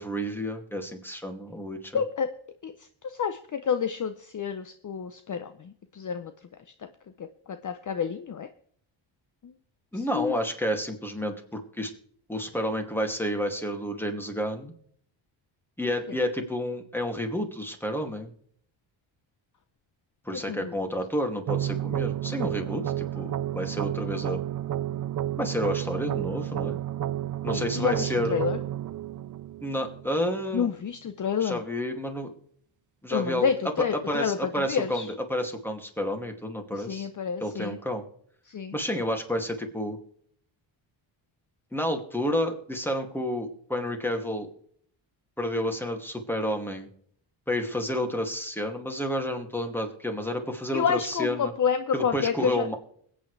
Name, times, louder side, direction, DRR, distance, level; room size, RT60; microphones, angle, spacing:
voice 1, 0.0-2.0 9.9-11.9 12.3-14.7 15.8-18.3 20.3-24.4 25.4-26.8 27.4-28.4 29.6-30.7 31.4-32.3 33.0-33.5 33.9-37.1 37.4-38.0 38.7-40.0 41.7-44.5 45.4-46.9 47.5-51.5 51.9-52.7, equal, 5° left, 4 dB, 2.4 m, -30 dB
voice 2, 1.9-2.3 2.6-2.7 3.0-6.3 7.6-8.5 10.1-10.3 20.5-20.7 27.5-28.6 30.5-31.6 33.1-34.4 34.7-35.1 36.8-37.8 38.5-38.7 50.7-52.7, left 7 dB, 40° left, 10 dB, 0.8 m, -29 dB
sound 1, 21.5-30.5, right 12 dB, 40° right, 0.5 m, -31 dB
21.5 x 9.0 x 3.3 m, 0.63 s
cardioid pair, 75°, 49 cm